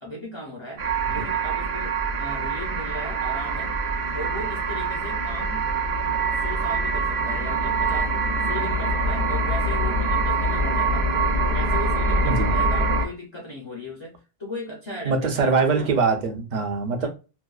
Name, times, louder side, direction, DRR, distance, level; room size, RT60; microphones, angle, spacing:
voice 1, 0.0-3.7 4.1-5.6 6.4-8.2 8.4-11.1 11.5-15.9 17.0-17.1, left 1 dB, 35° left, 0.5 m, -37 dB
sound 1, 0.8-13.1, right 3 dB, 80° right, 1.0 m, -24 dB
voice 2, 12.2-12.6 15.0-17.1, right 4 dB, 50° right, 0.7 m, -23 dB
2.6 x 2.1 x 2.3 m
omnidirectional pair, 1.1 m